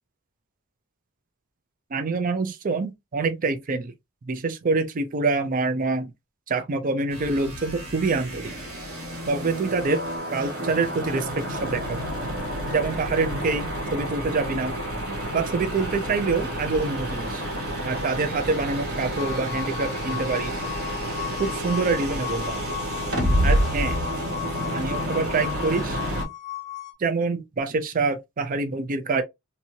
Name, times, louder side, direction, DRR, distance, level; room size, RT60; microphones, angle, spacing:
voice 1, 1.9-3.9 4.3-6.1 6.5-8.5 9.3-10.0 10.3-12.0 12.7-14.7 15.3-17.4 17.8-20.6 21.4-22.7 23.4-24.0 24.7-26.0 27.0-29.2, right 4 dB, 40° right, 0.4 m, -26 dB
sound 1, 7.1-26.2, equal, 90° right, 1.3 m, -29 dB
sound 2, 19.2-26.9, left 15 dB, 35° left, 0.6 m, -36 dB
2.7 x 2.6 x 2.7 m
head